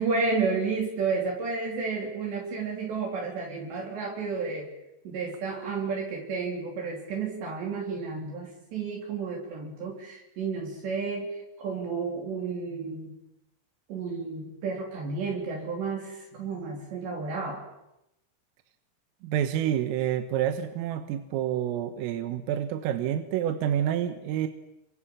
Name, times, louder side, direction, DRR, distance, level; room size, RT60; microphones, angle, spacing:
voice 1, 0.0-4.7 5.1-13.1 13.9-17.6, right 4 dB, 60° right, 0 dB, 5.3 m, -31 dB
voice 2, 19.2-24.5, right 10 dB, 80° right, 8 dB, 3.9 m, -28 dB
28.5 x 26.0 x 7.4 m, 0.88 s
omnidirectional pair, 6.0 m